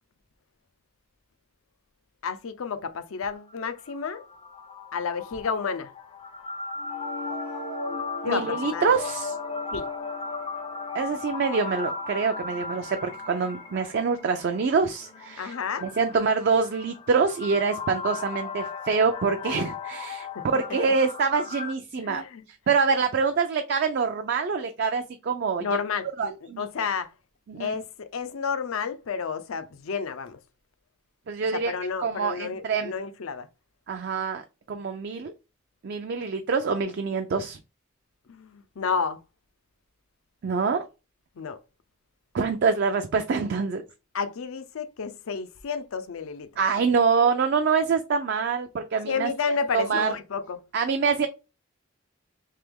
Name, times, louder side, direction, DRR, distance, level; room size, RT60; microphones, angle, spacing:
voice 1, 2.2-4.2 4.9-5.9 8.2-9.0 9.7-9.9 15.4-15.9 20.3-20.4 21.9-22.4 25.6-27.1 27.6-30.4 31.5-33.5 38.3-39.2 41.4-41.6 44.1-46.5 49.0-50.6, left 5 dB, 85° left, 0.5 m, -31 dB
sound 1, 3.4-21.7, left 4 dB, 25° left, 0.5 m, -37 dB
sound 2, 6.8-12.8, left 1 dB, 80° right, 0.7 m, -41 dB
voice 2, 8.2-9.3 10.9-15.5 15.8-20.3 20.5-22.2 22.7-25.7 26.2-26.7 27.5-27.7 31.3-31.7 32.0-32.9 33.9-34.4 34.7-35.3 35.8-37.6 40.4-40.8 42.3-43.8 46.6-49.3 49.7-50.1 50.7-51.3, right 5 dB, 55° right, 0.4 m, -25 dB
3.3 x 2.9 x 3.5 m
head